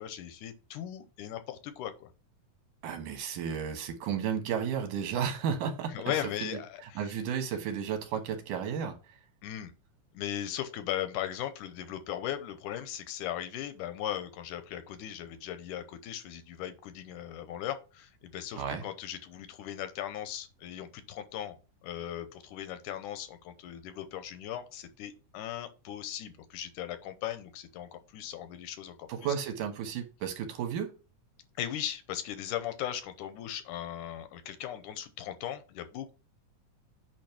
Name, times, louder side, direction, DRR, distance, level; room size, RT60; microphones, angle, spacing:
voice 1, 0.0-2.1 5.9-7.1 9.4-9.7 10.1-21.6 21.8-29.3 31.6-36.1, left 11 dB, 85° left, 10 dB, 2.3 m, -38 dB
voice 2, 2.8-5.9 6.4-6.5 7.0-9.0 18.6-18.8 29.1-30.9, right 7 dB, 85° right, 6 dB, 2.8 m, -33 dB
8.8 x 3.1 x 5.8 m, 0.32 s
omnidirectional pair, 3.6 m